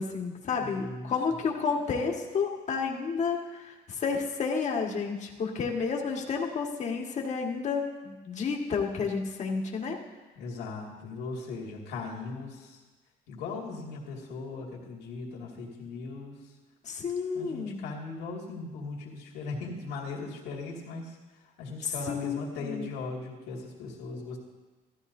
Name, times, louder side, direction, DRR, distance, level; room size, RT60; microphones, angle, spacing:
voice 1, 0.0-10.0 16.8-17.8 21.8-22.9, left 5 dB, 45° left, 0 dB, 1.8 m, -31 dB
voice 2, 0.6-1.4 10.4-12.8 13.3-16.5 17.3-24.4, left 3 dB, 85° left, -1 dB, 2.4 m, -39 dB
15.0 x 13.5 x 2.7 m, 1.3 s
cardioid pair, 110°, 17 cm